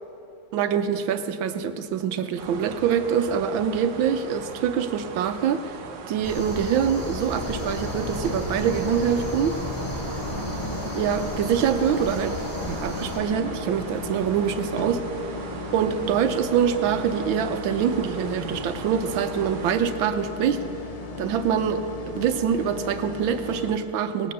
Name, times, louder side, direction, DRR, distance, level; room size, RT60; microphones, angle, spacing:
voice 1, 0.5-5.6 6.1-9.6 10.9-12.4 12.7-15.0 15.7-20.6 21.2-24.3, right 8 dB, 80° right, 9 dB, 1.5 m, -25 dB
sound 1, 2.4-19.8, right 5 dB, 60° right, 1.4 m, -39 dB
sound 2, 6.2-13.2, left 1 dB, 10° left, 1.9 m, -34 dB
sound 3, 7.3-23.8, left 2 dB, 65° left, 0.3 m, -35 dB
19.0 x 8.6 x 6.7 m, 2.9 s
omnidirectional pair, 2.2 m